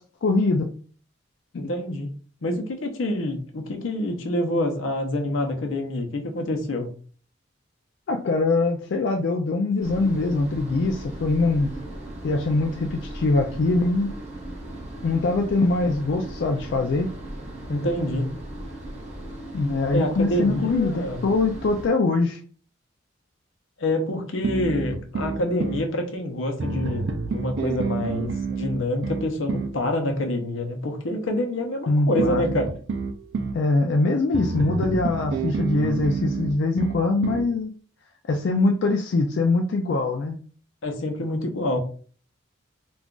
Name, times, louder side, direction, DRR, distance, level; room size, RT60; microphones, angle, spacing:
voice 1, 0.2-0.7 1.5-1.7 8.1-11.7 12.2-14.2 15.0-17.1 19.5-22.4 31.9-32.4 33.5-37.7 38.3-40.4, left 3 dB, 60° left, 3 dB, 0.3 m, -23 dB
voice 2, 1.6-2.1 2.4-6.9 17.7-18.3 19.9-21.2 23.8-32.7 40.8-41.8, left 1 dB, 85° left, 4 dB, 0.7 m, -27 dB
sound 1, 9.8-21.9, right 1 dB, 35° right, 0.7 m, -37 dB
sound 2, 24.4-25.9 26.6-29.8 32.2-33.6 34.3-37.5, right 4 dB, 65° right, 0.4 m, -28 dB
2.4 x 2.3 x 3.7 m, 0.42 s
head